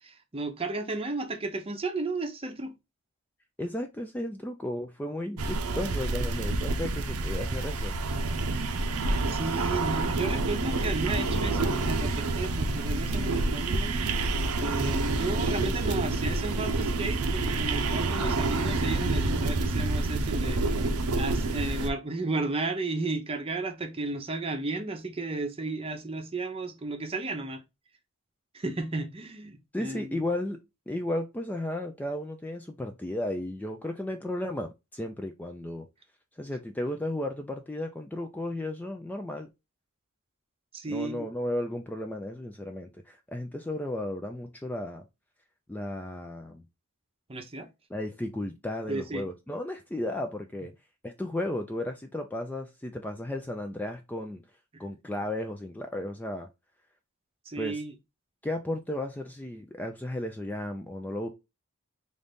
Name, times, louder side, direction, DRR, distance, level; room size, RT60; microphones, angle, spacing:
voice 1, 0.0-2.7 9.3-27.6 28.5-30.2 40.7-41.3 47.3-47.7 48.9-49.3 54.7-54.8 57.5-57.9, right 3 dB, 25° right, 0.7 m, -34 dB
voice 2, 3.6-8.0 29.7-30.6 30.9-35.9 36.4-39.5 40.9-45.0 45.7-46.6 47.9-50.7 51.0-54.4 54.8-56.5 57.6-57.8 58.4-61.3, left 1 dB, 10° left, 0.3 m, -34 dB
sound 1, 5.4-21.9, right 2 dB, 85° right, 0.6 m, -28 dB
3.9 x 2.6 x 3.4 m
head